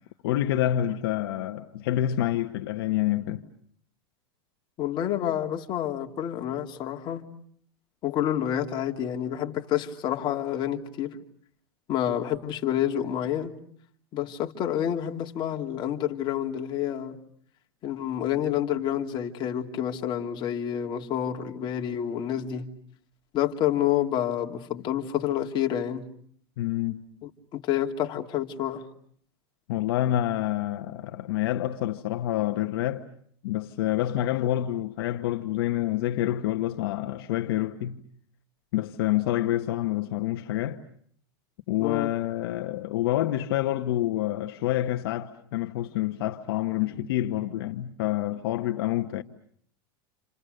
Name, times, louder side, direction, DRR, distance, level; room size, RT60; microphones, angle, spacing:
voice 1, 0.2-3.4 26.6-27.0 29.7-33.1 33.4-38.0 38.7-40.8 41.7-49.2, left 13 dB, 70° left, 1.3 m, -27 dB
voice 2, 4.8-7.2 8.0-11.2 11.9-13.5 14.1-17.2 17.8-22.7 23.3-26.0 27.2-28.9 41.8-42.1, left 10 dB, 35° left, 2.8 m, -28 dB
30.0 x 28.5 x 6.7 m
supercardioid pair, 135°, 13 cm